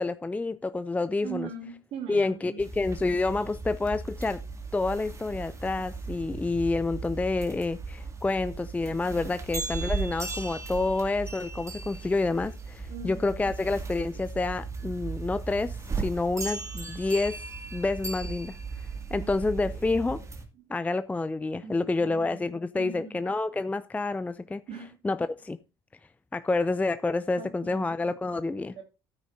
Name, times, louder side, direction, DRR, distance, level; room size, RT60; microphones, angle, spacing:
voice 1, 0.0-1.5 2.1-4.4 4.7-17.4 17.7-20.2 20.7-24.6 25.0-25.6 26.3-28.8, left 3 dB, 15° left, 0.5 m, -28 dB
voice 2, 1.2-2.6 12.9-13.3 19.1-19.3 21.6-23.2 24.7-25.0 27.4-28.1 28.6-28.8, right 6 dB, 55° right, 2.3 m, -41 dB
sound 1, 2.6-20.4, right 4 dB, 25° right, 2.3 m, -37 dB
13.0 x 9.2 x 2.7 m
hypercardioid pair, 60°, 12 cm